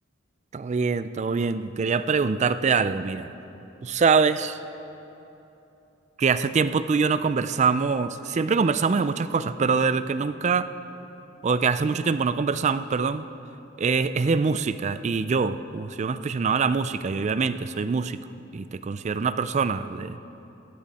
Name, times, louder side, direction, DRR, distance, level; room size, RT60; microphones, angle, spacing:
voice 1, 0.5-3.3 3.8-4.6 6.2-10.7 11.4-13.3 13.8-18.2 18.5-20.2, right 5 dB, 35° right, 13 dB, 0.4 m, -24 dB
20.5 x 11.0 x 4.2 m, 2.9 s
head